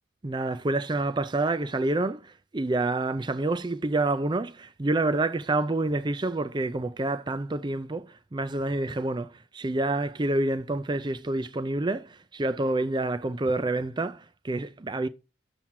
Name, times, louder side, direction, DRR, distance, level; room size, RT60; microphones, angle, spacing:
voice 1, 0.2-15.1, right 2 dB, 20° right, 0.5 m, -28 dB
7.3 x 7.0 x 4.7 m
head